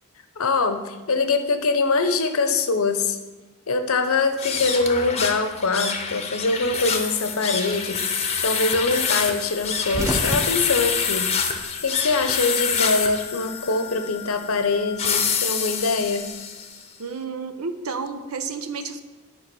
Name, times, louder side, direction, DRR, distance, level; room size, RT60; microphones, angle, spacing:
voice 1, 0.4-3.2 3.7-8.0 8.4-11.5 11.8-16.3, left 3 dB, 70° left, 8 dB, 0.8 m, -23 dB
sound 1, 4.3-16.8, left 6 dB, 30° left, 0.8 m, -27 dB
sound 2, 9.6-12.2 12.4-13.5 14.7-16.2, equal, 15° right, 0.7 m, -32 dB
voice 2, 17.0-19.0, right 4 dB, 75° right, 9 dB, 0.7 m, -31 dB
9.9 x 4.7 x 6.1 m, 1.2 s
head